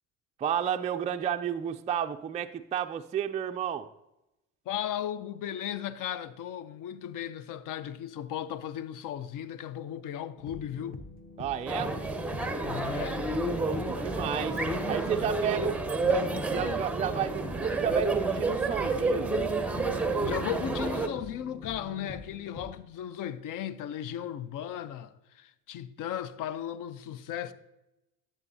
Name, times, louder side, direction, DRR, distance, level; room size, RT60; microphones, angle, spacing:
voice 1, 0.4-3.9 11.4-11.9 13.6-14.6 14.9-15.8 16.1-19.3, right 8 dB, 20° right, 0.3 m, -32 dB
voice 2, 4.7-11.0 12.6-13.3 20.2-27.5, left 10 dB, 55° left, 0.6 m, -36 dB
sound 1, 10.4-22.7, equal, 25° left, 1.0 m, -44 dB
sound 2, 11.7-21.1, right 3 dB, 5° right, 0.7 m, -30 dB
10.5 x 7.5 x 2.7 m
supercardioid pair, 80°, 39 cm